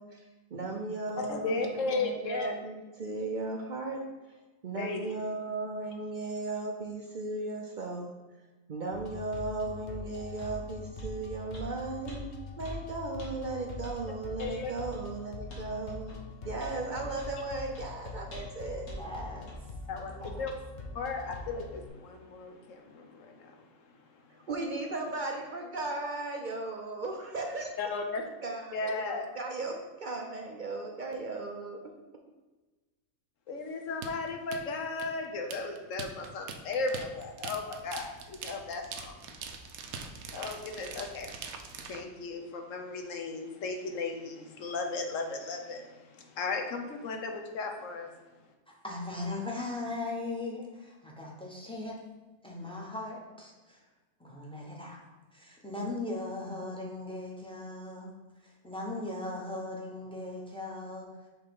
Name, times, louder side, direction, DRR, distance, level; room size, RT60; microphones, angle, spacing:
voice 1, 0.0-4.0 4.3-8.1 8.7-16.2 16.4-18.8 24.5-27.7 28.4-31.8, right 3 dB, 55° right, 1 dB, 0.5 m, -36 dB
voice 2, 1.2-2.5 4.7-5.1 14.4-14.7 19.9-20.5 20.9-24.4 27.8-28.2 28.7-29.2 33.5-39.2 40.3-41.3 41.9-48.4, left 3 dB, 65° left, 3 dB, 1.1 m, -36 dB
sound 1, 8.9-21.9, left 3 dB, 45° left, 0.7 m, -43 dB
sound 2, 10.4-10.5 11.0-11.2 11.5-11.7 12.1-12.2 12.6-12.8 13.2-13.3 13.8-14.0 14.4-14.6 14.9-15.1 15.5-15.7 16.1-16.2 16.6-16.8 17.2-17.4 17.7-17.9 18.3-18.6 18.9-19.0 19.5-19.6, right 1 dB, 85° left, 1.8 m, -44 dB
voice 3, 18.9-19.7 20.2-20.4 48.7-52.0 52.4-53.8 54.2-55.0 55.3-58.1 58.4-61.1, left 2 dB, 5° left, -2 dB, 0.8 m, -38 dB
sound 3, 34.0-42.0, right 5 dB, 80° right, 1.1 m, -43 dB
6.0 x 3.3 x 5.3 m, 1.2 s
omnidirectional pair, 1.5 m